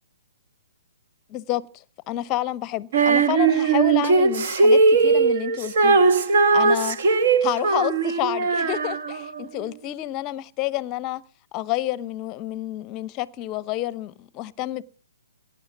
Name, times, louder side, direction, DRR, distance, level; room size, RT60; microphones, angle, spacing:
voice 1, 1.3-1.7 2.1-6.0 6.5-7.0 7.4-11.2 11.5-14.8, left 15 dB, 25° left, 0.7 m, -29 dB
Female singing, 2.9-9.4, right 4 dB, 50° right, 1.5 m, -19 dB
17.5 x 10.0 x 7.1 m
figure-of-eight pair, 125°, 0 cm